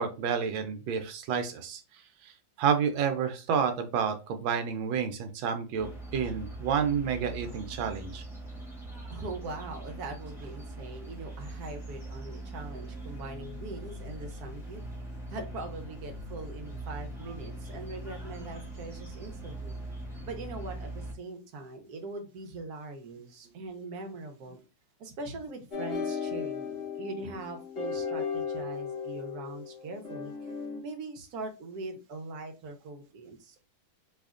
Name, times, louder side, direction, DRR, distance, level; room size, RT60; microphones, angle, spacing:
voice 1, 0.0-1.8 2.2-2.3 2.6-8.2, right 7 dB, 85° right, 7 dB, 1.3 m, -29 dB
sound 1, 5.8-21.1, right 1 dB, 5° right, 0.4 m, -41 dB
voice 2, 9.1-14.8 15.3-19.8 20.2-24.6 25.0-30.5 30.8-33.6, right 2 dB, 65° right, 5 dB, 1.1 m, -41 dB
sound 2, 25.7-30.8, left 6 dB, 40° left, 1.1 m, -35 dB
4.2 x 2.8 x 2.4 m, 0.31 s
omnidirectional pair, 2.1 m